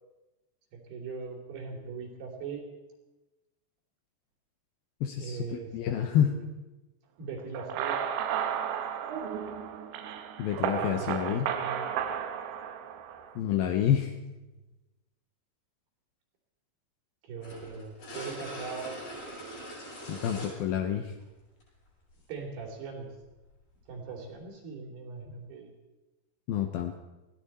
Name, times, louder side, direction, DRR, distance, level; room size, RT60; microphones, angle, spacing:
voice 1, 0.7-2.6 5.2-5.7 6.0-6.5 7.2-8.1 10.7-11.8 17.2-18.9 22.3-23.1 23.9-25.7, right 5 dB, 65° right, 1 dB, 4.7 m, -40 dB
voice 2, 5.0-6.4 10.4-11.5 13.4-14.1 20.1-21.1 26.5-27.0, left 9 dB, 75° left, 5 dB, 2.3 m, -28 dB
sound 1, 7.5-13.3, right 8 dB, 85° right, 3.4 m, -33 dB
sound 2, 17.4-20.7 21.6-21.7 23.4-23.5, equal, 60° left, 9.6 m, -41 dB
20.5 x 16.0 x 4.3 m, 1.1 s
omnidirectional pair, 5.1 m